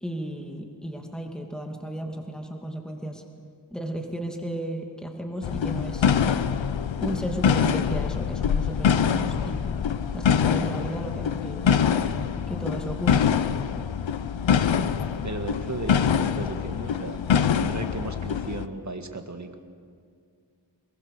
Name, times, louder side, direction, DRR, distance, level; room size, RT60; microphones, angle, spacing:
voice 1, 0.0-3.2 3.7-6.1 7.0-9.9 10.1-11.7 12.5-13.3, equal, ahead, 2 dB, 2.5 m, -34 dB
sound 1, 5.4-18.7, left 7 dB, 90° left, 0.8 m, -24 dB
voice 2, 15.2-17.2 17.6-19.6, right 2 dB, 40° right, 5 dB, 2.0 m, -35 dB
22.5 x 21.5 x 6.7 m, 2.3 s
wide cardioid pair, 65°, 45 cm